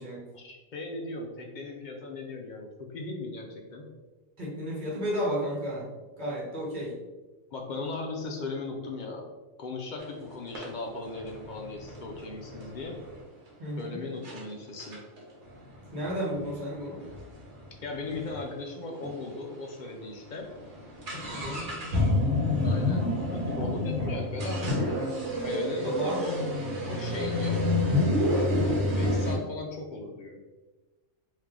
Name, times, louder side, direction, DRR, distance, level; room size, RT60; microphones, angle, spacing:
voice 1, 0.3-3.9 7.5-9.3 9.6-13.0 13.8-15.0 17.8-20.5 22.6-25.1 25.4-26.4 26.8-27.7 28.9-30.4, left 3 dB, 60° left, 1 dB, 0.5 m, -37 dB
voice 2, 4.4-5.9 6.2-6.9 13.6-14.1 15.9-17.0 21.3-22.2 25.8-26.3, equal, 40° right, -5 dB, 1.2 m, -33 dB
sound 1, 10.0-10.1 10.5-13.2 13.8-13.9 14.2-14.4 14.8-18.5 18.8-18.9 19.0-19.1 19.8-19.9 20.2-29.4, left 1 dB, 65° right, 1.2 m, -29 dB
3.2 x 2.7 x 3.6 m, 1.2 s
omnidirectional pair, 1.3 m